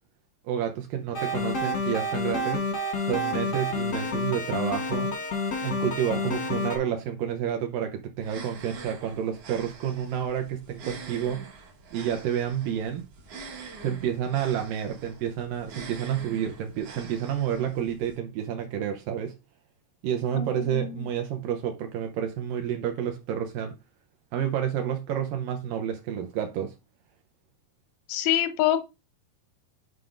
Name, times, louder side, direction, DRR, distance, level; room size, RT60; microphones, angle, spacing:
voice 1, 0.5-2.7 3.0-5.1 5.6-11.5 11.9-13.1 13.8-19.3 20.0-23.7 24.3-26.7, right 9 dB, 75° right, 2.2 m, -29 dB
sound 1, 1.1-6.8, left 2 dB, 65° left, 0.9 m, -29 dB
sound 2, 8.2-18.2, right 4 dB, 60° right, 1.6 m, -45 dB
voice 2, 20.3-21.1 28.1-28.8, left 11 dB, 90° left, 2.6 m, -26 dB
9.4 x 4.9 x 2.5 m
omnidirectional pair, 4.1 m